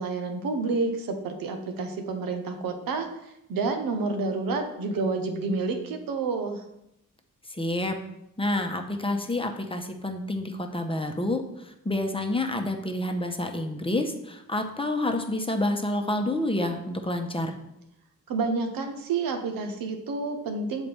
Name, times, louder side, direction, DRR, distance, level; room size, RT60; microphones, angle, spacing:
voice 1, 0.0-3.1 3.5-6.6 18.3-20.9, right 4 dB, 90° right, 5 dB, 0.9 m, -29 dB
voice 2, 7.5-8.0 8.4-17.5, left 1 dB, 15° left, 4 dB, 0.8 m, -28 dB
6.7 x 4.2 x 3.4 m, 0.84 s
cardioid pair, 60°, 34 cm